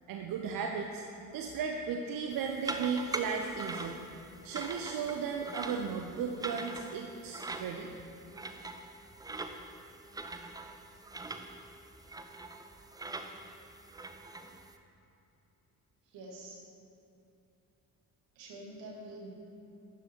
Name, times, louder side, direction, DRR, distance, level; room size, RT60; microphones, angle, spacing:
voice 1, 0.1-1.0 1.3-3.9 4.4-7.9, right 6 dB, 45° right, 3 dB, 0.8 m, -35 dB
sound 1, 2.3-14.8, right 2 dB, 10° right, 0.4 m, -43 dB
voice 2, 16.0-16.6 18.4-19.3, right 1 dB, 60° right, -1 dB, 1.9 m, -46 dB
12.0 x 6.2 x 4.5 m, 2.9 s
figure-of-eight pair, 45°, 50 cm